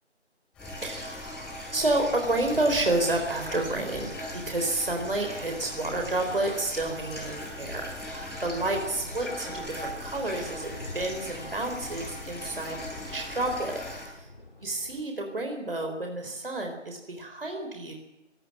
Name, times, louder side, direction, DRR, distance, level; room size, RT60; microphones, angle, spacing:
sound 1, 0.5-14.0, left 1 dB, 5° left, 4.4 m, -39 dB
voice 1, 0.8-13.8 14.1-14.2 14.6-17.9, right 2 dB, 50° right, 3 dB, 4.2 m, -30 dB
sound 2, 3.2-15.0, left 2 dB, 50° left, 3.4 m, -47 dB
25.0 x 17.5 x 8.6 m, 0.97 s
figure-of-eight pair, 170°, 35 cm